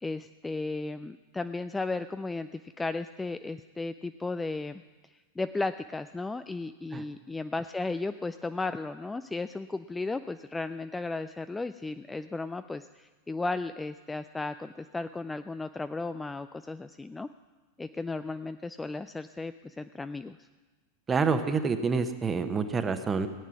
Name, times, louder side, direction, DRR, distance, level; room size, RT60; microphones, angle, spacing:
voice 1, 0.0-4.8 5.4-17.3 17.8-20.5, left 3 dB, 10° left, 11 dB, 0.3 m, -35 dB
voice 2, 21.1-23.3, right 5 dB, 20° right, 9 dB, 1.0 m, -27 dB
17.5 x 9.0 x 6.0 m, 1.3 s
figure-of-eight pair, 90°, 0 cm